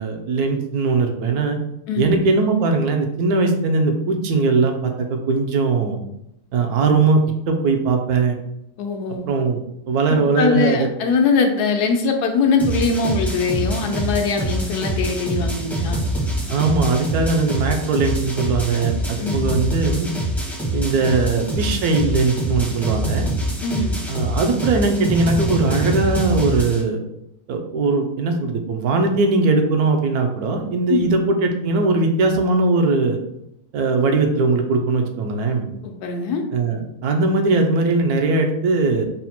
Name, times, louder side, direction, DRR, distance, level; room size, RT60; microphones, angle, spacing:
voice 1, 0.0-1.6 2.0-6.0 6.5-7.2 7.5-8.4 9.3-9.6 9.9-10.8 16.5-20.1 20.7-23.3 24.1-27.0 27.5-33.2 33.7-35.7 36.5-39.1, right 3 dB, 75° right, 4 dB, 1.1 m, -20 dB
voice 2, 8.8-9.3 10.1-16.1 19.2-19.5 23.6-23.9 30.9-31.1 35.8-36.4, left 4 dB, 85° left, 4 dB, 1.2 m, -21 dB
sound 1, 12.6-26.8, right 1 dB, ahead, 0.5 m, -25 dB
4.0 x 2.1 x 4.2 m, 0.80 s
omnidirectional pair, 1.7 m